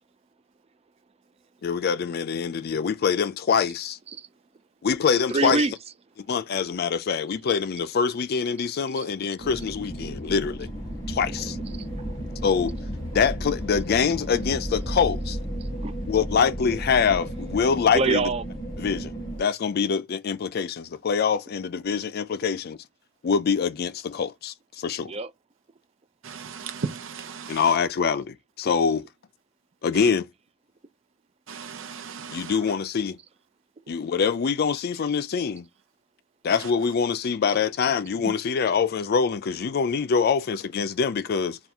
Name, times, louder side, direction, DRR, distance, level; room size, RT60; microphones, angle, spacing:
voice 1, 1.6-4.0 4.8-5.6 6.3-10.7 11.1-11.6 12.4-12.8 13.1-15.4 16.1-18.2 18.8-19.1 19.4-22.8 23.2-25.1 27.5-29.1 29.8-30.3 32.3-33.2 33.9-35.7 36.4-41.6, left 6 dB, 50° left, 0.4 m, -24 dB
voice 2, 5.3-6.0 7.3-7.5 8.4-8.7 9.0-9.1 9.5-10.1 11.2-15.1 15.6-16.6 17.0-17.2 17.5-18.5 25.1-25.3, right 3 dB, 30° right, 0.4 m, -32 dB
sound 1, 9.4-19.4, equal, 20° left, 1.3 m, -33 dB
voice 3, 26.2-27.7 29.9-30.1 31.5-32.6 38.2-38.3, right 5 dB, 70° right, 0.6 m, -36 dB
3.5 x 2.4 x 4.3 m
head